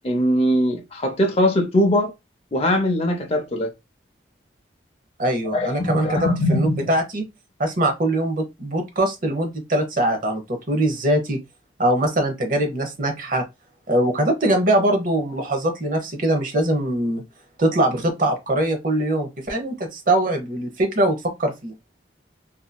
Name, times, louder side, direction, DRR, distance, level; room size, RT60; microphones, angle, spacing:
voice 1, 0.0-2.1 2.5-3.7 5.5-6.9, left 1 dB, 35° left, 0.6 m, -21 dB
voice 2, 5.2-7.2 7.6-10.4 10.7-11.4 11.8-13.4 13.9-17.2 17.6-21.7, right 1 dB, 50° right, 0.8 m, -22 dB
2.9 x 2.6 x 2.2 m
head